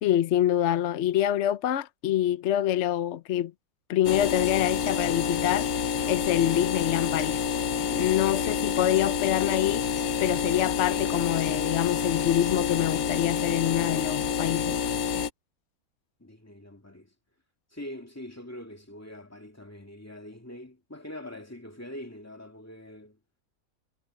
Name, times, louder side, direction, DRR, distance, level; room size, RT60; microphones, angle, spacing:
voice 1, 0.0-3.5 3.9-5.7 6.1-7.4 7.9-9.9 10.2-14.8, left 11 dB, 60° left, 0.9 m, -26 dB
sound 1, 4.0-15.3, left 7 dB, 80° left, 1.4 m, -28 dB
voice 2, 16.2-17.1 17.7-23.2, left 1 dB, 10° left, 2.3 m, -43 dB
omnidirectional pair, 1.5 m